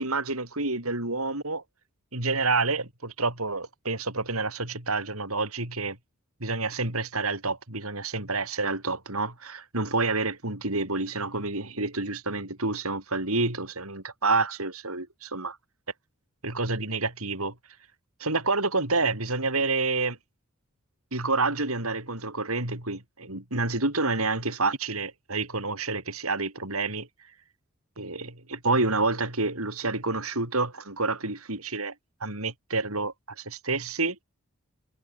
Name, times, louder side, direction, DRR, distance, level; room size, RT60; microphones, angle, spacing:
voice 1, 0.0-1.6 2.1-6.0 6.4-15.6 16.4-17.5 18.2-20.2 21.1-27.1 28.0-31.9 32.2-34.2, right 3 dB, 80° right, 6.9 m, -28 dB
head